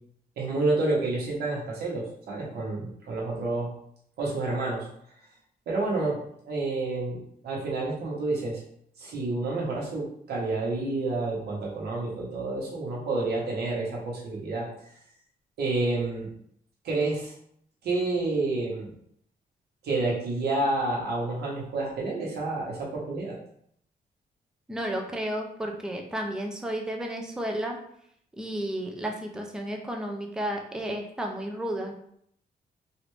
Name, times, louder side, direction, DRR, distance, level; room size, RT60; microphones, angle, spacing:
voice 1, 0.4-3.7 4.2-4.9 5.7-6.2 6.4-8.6 9.0-14.7 15.6-16.3 16.8-17.3 17.8-18.9 19.8-23.4, right 2 dB, 75° right, -4 dB, 1.1 m, -29 dB
voice 2, 24.7-27.8 28.4-31.9, right 1 dB, 5° right, 2 dB, 0.3 m, -32 dB
3.2 x 2.5 x 3.1 m, 0.68 s
wide cardioid pair, 180°, 17 cm